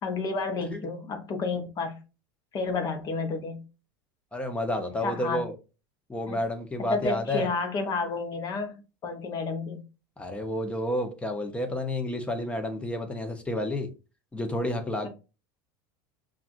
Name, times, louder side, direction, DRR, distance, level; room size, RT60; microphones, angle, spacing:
voice 1, 0.0-2.0 2.5-3.6 5.0-5.4 6.3-6.4 6.8-9.8, left 4 dB, 35° left, 0.9 m, -31 dB
voice 2, 4.3-5.5 6.1-7.5 10.2-13.9 14.3-15.1, left 1 dB, 10° left, 0.9 m, -30 dB
5.7 x 2.5 x 2.5 m
supercardioid pair, 115°, 11 cm